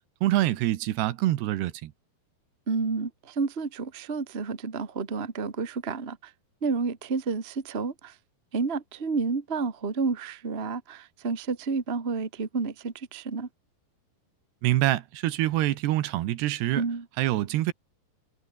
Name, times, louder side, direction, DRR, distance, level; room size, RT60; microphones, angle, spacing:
voice 1, 0.2-1.9 14.6-16.8 17.2-17.7, right 15 dB, 80° right, 3.2 m, -25 dB
voice 2, 2.7-6.3 6.6-8.1 8.5-13.5 16.7-17.0, right 4 dB, 25° right, 1.3 m, -30 dB
omnidirectional pair, 4.9 m